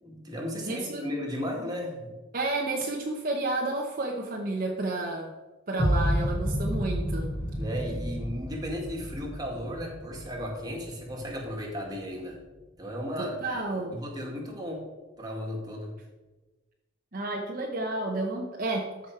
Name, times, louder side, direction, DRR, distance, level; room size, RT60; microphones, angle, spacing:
voice 1, 0.0-2.1 7.5-12.4 12.8-13.6 13.9-14.8 15.2-15.9, equal, 20° right, -1 dB, 2.0 m, -35 dB
voice 2, 0.7-1.0 2.3-5.3 5.7-7.4 13.2-14.0 17.1-19.1, right 2 dB, 45° right, 0 dB, 0.9 m, -31 dB
sound 1, 5.8-11.8, equal, 10° left, 1.7 m, -31 dB
13.5 x 5.2 x 4.7 m, 1.2 s
head